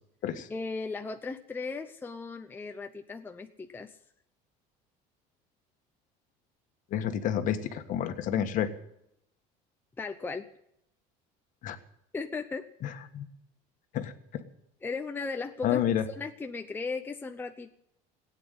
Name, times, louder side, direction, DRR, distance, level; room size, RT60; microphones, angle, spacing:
voice 1, 0.5-4.0 10.0-10.4 12.1-12.7 14.8-15.8 16.2-17.7, left 4 dB, 10° left, 5 dB, 0.7 m, -36 dB
voice 2, 6.9-8.7 11.6-11.8 12.8-13.2 13.9-14.4 15.6-16.0, left 10 dB, 50° left, 8 dB, 1.6 m, -30 dB
16.5 x 9.2 x 9.4 m, 0.76 s
cardioid pair, 150°, 17 cm